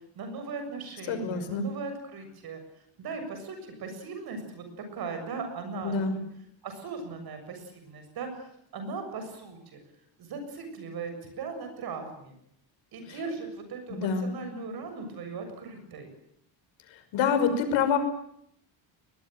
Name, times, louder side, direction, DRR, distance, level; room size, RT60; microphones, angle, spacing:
voice 1, 0.2-2.6 3.0-6.2 6.6-9.8 10.2-12.3 12.9-16.1, right 4 dB, 55° right, 6 dB, 7.2 m, -38 dB
voice 2, 1.1-1.6 5.8-6.2 13.9-14.3 16.9-18.0, left 6 dB, 85° left, 8 dB, 5.9 m, -26 dB
23.0 x 21.0 x 9.2 m, 0.71 s
cardioid pair, 165°, 45 cm